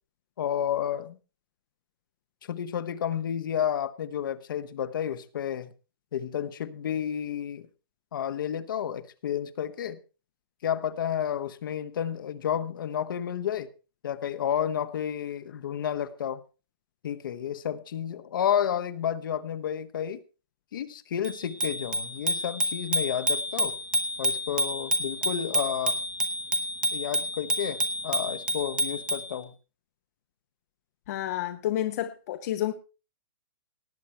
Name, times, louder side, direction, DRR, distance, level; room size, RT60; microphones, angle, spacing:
voice 1, 0.4-1.2 2.4-5.7 6.1-7.7 8.1-10.0 10.6-13.7 14.0-16.4 17.0-20.2 20.7-23.8 24.2-26.0 26.9-29.5, left 9 dB, 60° left, 1.2 m, -31 dB
Bicycle bell, 21.2-29.3, equal, 10° right, 1.0 m, -29 dB
voice 2, 31.1-32.7, left 13 dB, 45° left, 0.9 m, -30 dB
18.5 x 7.4 x 4.4 m
hypercardioid pair, 150°, 12 cm